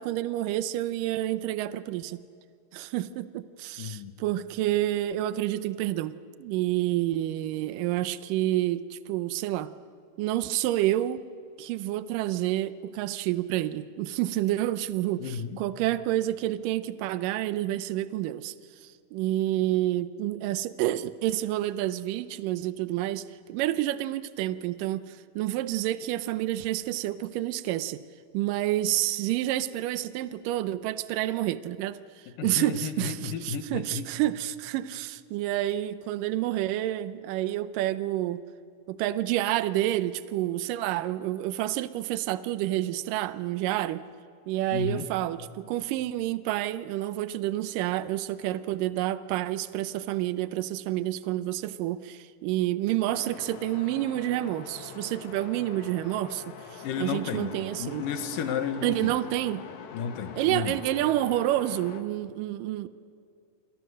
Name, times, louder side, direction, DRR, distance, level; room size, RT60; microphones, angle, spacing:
voice 1, 0.0-2.2 2.7-9.7 10.2-11.2 11.6-18.5 18.8-28.0 28.3-32.0 32.4-38.4 38.9-44.0 44.5-58.1 58.8-59.6 60.4-62.9, right 14 dB, 80° right, 14 dB, 2.4 m, -29 dB
voice 2, 3.8-4.1 15.2-15.6 32.4-34.1 44.7-45.1 56.8-57.5 57.8-59.1 59.9-60.8, left 7 dB, 80° left, 8 dB, 3.0 m, -32 dB
sound 1, 53.1-62.0, left 7 dB, 65° left, 2.5 m, -43 dB
28.0 x 27.0 x 6.5 m, 2.3 s
omnidirectional pair, 3.9 m